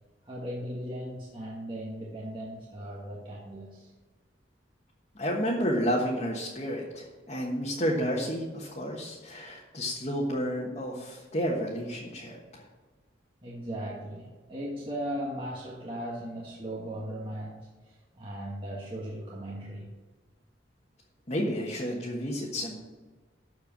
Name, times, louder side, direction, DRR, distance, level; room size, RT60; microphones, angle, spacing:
voice 1, 0.2-3.9 10.5-10.6 13.4-19.9, equal, 25° right, -5 dB, 1.5 m, -38 dB
voice 2, 5.1-12.7 21.3-22.8, equal, 35° left, -3 dB, 1.4 m, -31 dB
13.0 x 4.7 x 7.3 m, 1.3 s
head